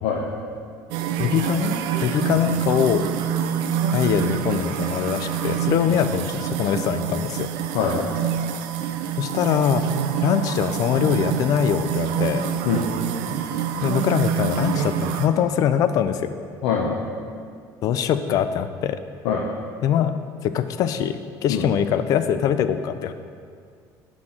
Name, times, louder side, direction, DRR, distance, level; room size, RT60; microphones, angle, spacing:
voice 1, 0.0-0.4 7.7-8.1 12.6-12.9 16.6-17.0 19.2-19.4 21.5-21.7, left 6 dB, 85° left, -1 dB, 0.6 m, -23 dB
sound 1, 0.9-15.3, right 8 dB, 85° right, 0.4 m, -26 dB
voice 2, 1.2-1.7 2.0-3.1 3.9-7.5 9.2-9.8 10.2-12.5 13.8-16.3 17.8-19.0 19.8-20.2 20.4-23.1, left 9 dB, 50° left, 11 dB, 0.3 m, -22 dB
6.0 x 5.9 x 3.7 m, 2.2 s
cardioid pair, 155°, 8 cm